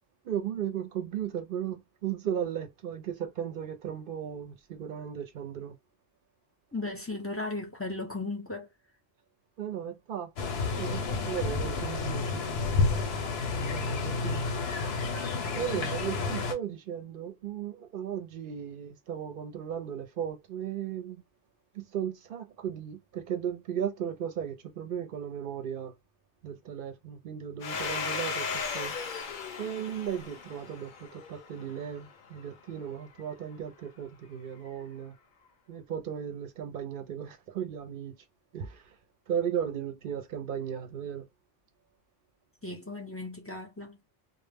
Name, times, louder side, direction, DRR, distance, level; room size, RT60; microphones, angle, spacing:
voice 1, 0.2-5.8 9.6-10.3 10.8-12.9 13.6-14.5 15.5-21.2 21.8-25.9 26.4-28.5 28.7-28.9 29.6-35.1 35.7-38.1 38.5-38.8 39.3-41.3, right 9 dB, 65° right, 0.7 m, -36 dB
voice 2, 6.7-8.7 15.7-15.9 42.6-44.0, left 2 dB, 20° left, 0.5 m, -36 dB
sound 1, 10.4-16.5, left 4 dB, 85° left, 0.9 m, -30 dB
Domestic sounds home sounds, 27.6-32.0, left 5 dB, 60° left, 0.6 m, -36 dB
2.0 x 2.0 x 3.3 m
omnidirectional pair, 1.0 m